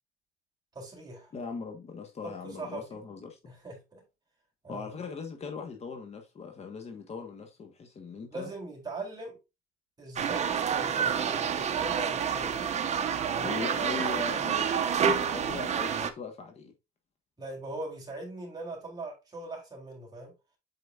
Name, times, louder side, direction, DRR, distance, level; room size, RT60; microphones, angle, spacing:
voice 1, 0.7-1.3 2.2-3.0 3.5-4.0 4.6-4.9 8.3-9.3 10.0-12.6 13.2-13.6 14.0-14.1 17.4-20.3, right 2 dB, 25° right, 3.8 m, -41 dB
voice 2, 1.3-3.4 4.7-8.5 13.4-16.7, left 5 dB, 40° left, 1.4 m, -40 dB
sound 1, 10.2-16.1, right 7 dB, 40° right, 0.9 m, -28 dB
8.1 x 5.0 x 2.5 m
cardioid pair, 110°, 17 cm